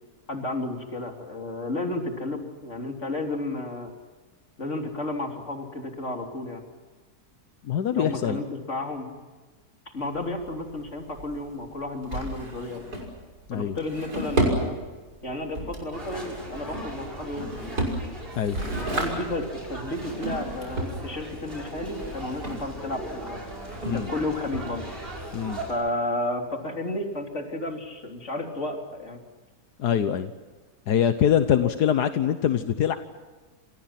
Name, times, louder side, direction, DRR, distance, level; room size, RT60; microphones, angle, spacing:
voice 1, 0.3-3.9 4.6-6.6 7.9-9.1 9.9-12.8 13.5-14.8 15.2-17.8 18.7-23.4 23.9-24.9 25.7-29.2 31.5-31.7, left 2 dB, 45° left, 2 dB, 3.9 m, -32 dB
voice 2, 7.6-8.4 13.5-13.8 18.4-18.6 23.9-24.1 25.3-25.6 29.8-30.3 30.9-33.0, left 9 dB, 85° left, 9 dB, 1.6 m, -23 dB
Drawer open or close, 10.0-25.2, right 1 dB, 75° right, 6.7 m, -33 dB
sound 1, 15.9-25.7, right 1 dB, 35° right, 6.7 m, -38 dB
29.0 x 27.0 x 6.0 m, 1.3 s
omnidirectional pair, 1.7 m